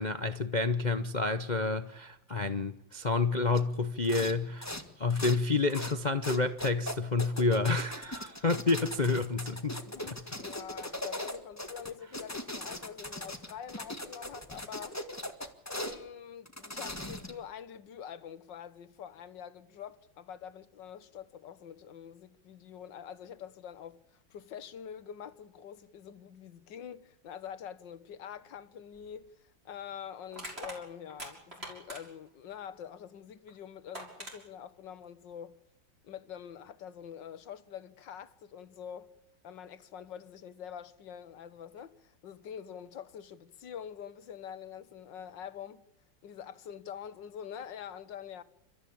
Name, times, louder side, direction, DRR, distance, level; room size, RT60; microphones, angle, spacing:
voice 1, 0.0-9.8, left 3 dB, 45° left, 0.6 m, -29 dB
sound 1, 3.5-3.7 4.0-4.4 4.6-5.4 5.7-6.0 6.2-16.0 16.5-17.4, left 1 dB, 10° left, 1.6 m, -39 dB
voice 2, 9.9-15.0 15.7-29.3 29.7-35.6 36.0-39.1 39.4-45.9 46.2-48.4, left 8 dB, 70° left, 1.8 m, -45 dB
Crushing, 28.9-29.1 30.3-32.3 33.5-33.6 33.9-34.4, right 1 dB, 30° right, 6.6 m, -43 dB
30.0 x 14.0 x 8.6 m
omnidirectional pair, 2.1 m